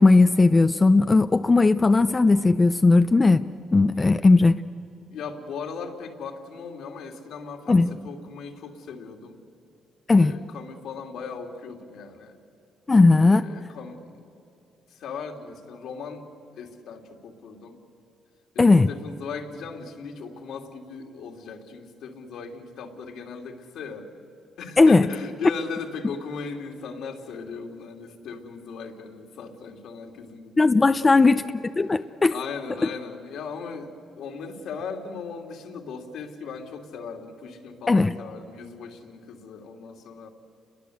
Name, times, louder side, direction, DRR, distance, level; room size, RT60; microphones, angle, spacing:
voice 1, 0.0-3.4 3.7-4.6 7.7-7.9 10.1-10.3 12.9-13.5 18.6-18.9 24.8-25.1 30.6-32.3 37.9-38.1, left 3 dB, 25° left, 10 dB, 0.6 m, -17 dB
voice 2, 5.1-9.4 10.2-12.4 13.3-14.2 14.9-16.3 16.6-17.8 18.5-24.1 24.6-31.5 31.8-32.0 32.3-40.3, left 5 dB, 80° left, 2 dB, 3.0 m, -38 dB
29.5 x 22.0 x 8.1 m, 2.7 s
cardioid pair, 90°, 0 cm